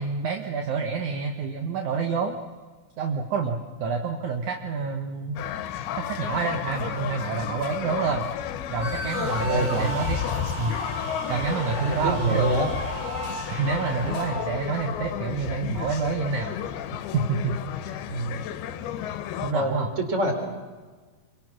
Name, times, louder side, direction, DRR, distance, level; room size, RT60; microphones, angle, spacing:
voice 1, 0.0-2.4 3.0-5.4 6.0-8.3 8.7-10.2 10.6-10.8 11.3-12.5 13.5-16.8 17.1-17.6 17.9-18.0 19.4-19.9, right 5 dB, 60° right, 3 dB, 2.4 m, -28 dB
sound 1, 5.4-19.5, left 10 dB, 90° left, 2.9 m, -32 dB
sound 2, 8.8-14.4, right 2 dB, 90° right, 6.3 m, -35 dB
voice 2, 9.3-9.9 11.8-12.7 18.1-18.5 19.5-20.3, right 1 dB, 20° right, 5 dB, 3.5 m, -26 dB
28.0 x 24.0 x 6.2 m, 1.4 s
omnidirectional pair, 4.3 m